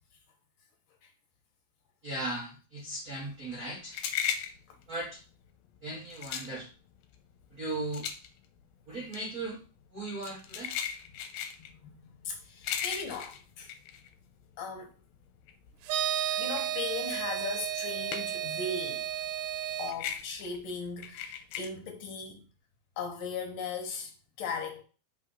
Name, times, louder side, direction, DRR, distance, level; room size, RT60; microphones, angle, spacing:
voice 1, 2.0-3.9 4.9-5.2 5.8-6.7 7.5-8.1 8.9-9.6 9.9-10.8, right 2 dB, 70° right, 0.8 m, -37 dB
sound 1, 3.2-14.8 15.1-18.6 18.9-21.7, left 9 dB, 85° left, 2.5 m, -38 dB
voice 2, 11.8-13.7 14.6-14.9 16.4-19.1 19.8-22.5 23.0-24.1 24.4-24.8, left 4 dB, 70° left, 2.3 m, -38 dB
sound 2, 15.9-19.9, right 11 dB, 85° right, 2.5 m, -33 dB
5.5 x 3.3 x 5.6 m
omnidirectional pair, 4.3 m